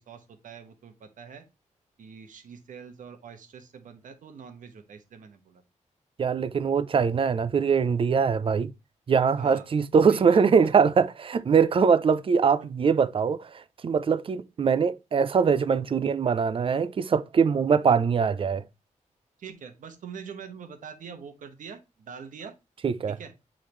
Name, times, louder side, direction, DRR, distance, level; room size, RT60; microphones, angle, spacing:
voice 1, 0.0-1.4 2.0-5.6 9.3-9.7 9.9-10.7 19.4-22.5 23.1-23.3, right 6 dB, 85° right, 1.2 m, -44 dB
voice 2, 6.2-8.7 9.1-13.4 13.8-18.6 22.8-23.2, right 6 dB, 45° right, 0.5 m, -22 dB
8.6 x 3.8 x 3.2 m
wide cardioid pair, 120°, 13 cm